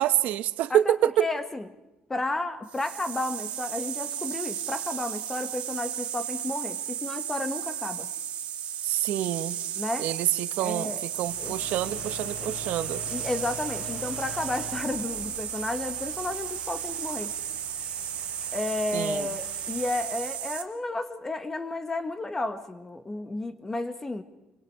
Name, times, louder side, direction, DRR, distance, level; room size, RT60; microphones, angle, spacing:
voice 1, 0.0-1.2 8.8-9.6 10.0-13.0 18.9-19.3, right 12 dB, 75° right, 13 dB, 1.1 m, -27 dB
voice 2, 0.7-1.7 2.1-8.1 9.7-10.1 10.6-11.0 11.4-11.6 12.4-12.5 13.0-17.3 18.5-24.2, left 2 dB, 15° left, 10 dB, 1.6 m, -32 dB
sound 1, 2.7-20.6, right 10 dB, 55° right, 2.5 m, -34 dB
sound 2, 11.1-20.4, left 4 dB, 60° left, 6.2 m, -45 dB
28.0 x 25.0 x 4.8 m, 1.0 s
cardioid pair, 155°, 3 cm